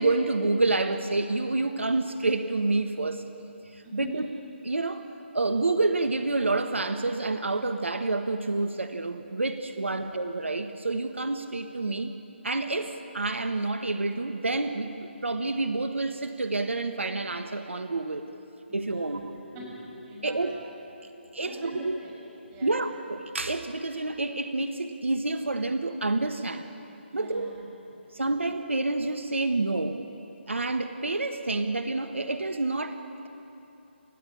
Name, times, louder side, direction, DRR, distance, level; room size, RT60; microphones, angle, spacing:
voice 1, 0.0-3.2 3.7-4.3 4.6-5.1 5.3-12.1 12.4-18.3 18.7-19.3 20.2-20.5 21.3-22.0 22.6-26.7 27.1-27.5 28.1-30.0 30.5-33.0, right 2 dB, 85° right, 8 dB, 1.5 m, -28 dB
voice 2, 3.8-4.3 9.9-10.1 18.7-20.6 21.1-22.1 22.5-22.8 27.1-28.2, equal, 15° right, -3 dB, 6.4 m, -44 dB
29.0 x 15.0 x 8.7 m, 2.9 s
figure-of-eight pair, 155°, 6 cm